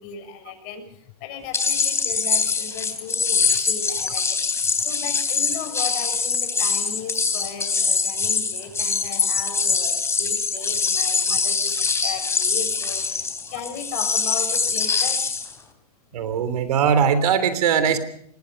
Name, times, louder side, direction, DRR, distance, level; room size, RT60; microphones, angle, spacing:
voice 1, 0.0-15.2, left 7 dB, 45° left, 6 dB, 6.5 m, -36 dB
sound 1, 1.5-15.5, left 5 dB, 15° left, 3.3 m, -23 dB
voice 2, 16.1-18.0, right 7 dB, 70° right, 12 dB, 3.3 m, -20 dB
25.5 x 21.0 x 5.3 m, 0.67 s
hypercardioid pair, 120°, 20 cm